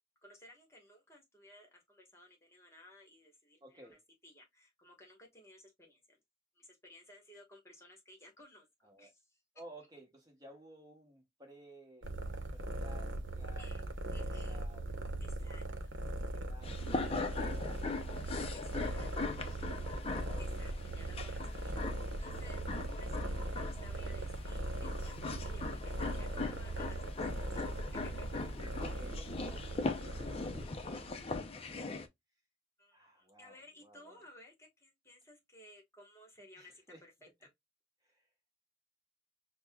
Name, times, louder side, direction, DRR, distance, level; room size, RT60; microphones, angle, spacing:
voice 1, 0.2-6.2 6.5-8.7 9.0-9.4 13.6-13.8 14.1-14.6 15.2-15.6 18.5-19.3 20.4-21.7 22.2-22.6 22.9-27.0 27.5-28.3 32.8-36.8, left 1 dB, 15° left, 1.1 m, -58 dB
voice 2, 3.6-4.0 8.8-9.1 9.5-12.1 12.5-15.5 16.3-18.8 28.8-31.2 31.5-32.0 32.9-34.2 36.5-37.0 37.4-37.5 38.0-38.3, right 1 dB, 20° right, 1.0 m, -57 dB
sound 1, 12.0-31.3, right 2 dB, 80° right, 0.8 m, -40 dB
sound 2, 16.6-32.1, left 3 dB, 30° left, 0.5 m, -41 dB
6.2 x 2.1 x 2.2 m
head